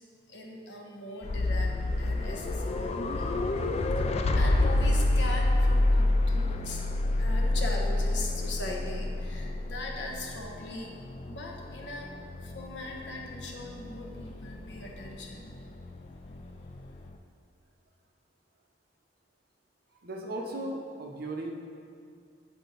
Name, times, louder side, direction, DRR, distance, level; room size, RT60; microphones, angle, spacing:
voice 1, 0.3-1.7 2.0-3.5 4.0-10.9 11.2-12.1 12.4-15.5, left 2 dB, 70° left, -1 dB, 1.0 m, -40 dB
sound 1, 1.2-17.1, left 2 dB, 35° left, 0.4 m, -29 dB
voice 2, 20.0-21.5, right 1 dB, 55° right, 0 dB, 0.8 m, -36 dB
8.9 x 4.6 x 4.0 m, 2.3 s
head